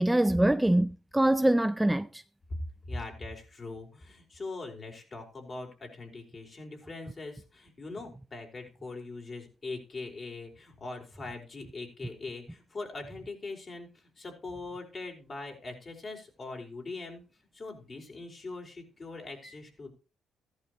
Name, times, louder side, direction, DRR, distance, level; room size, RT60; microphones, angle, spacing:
voice 1, 0.0-2.2, right 1 dB, 10° right, 0.5 m, -24 dB
voice 2, 2.9-17.2 17.5-19.9, left 3 dB, 35° left, 4.6 m, -41 dB
14.5 x 11.5 x 3.1 m
cardioid pair, 90°, 0 cm